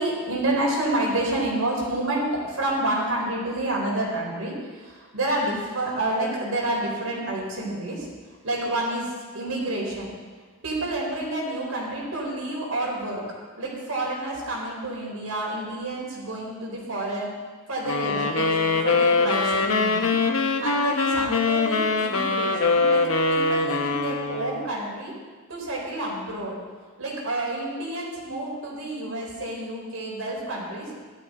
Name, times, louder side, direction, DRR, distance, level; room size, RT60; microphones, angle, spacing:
voice 1, 0.0-8.1 8.4-10.1 10.6-13.2 13.6-17.3 17.7-20.1 20.6-23.0 23.3-25.1 25.5-26.5 27.0-30.9, right 1 dB, 75° right, -3 dB, 4.3 m, -29 dB
sound 1, 17.9-24.7, left 3 dB, 80° left, 1.0 m, -23 dB
16.5 x 12.0 x 3.8 m, 1.5 s
head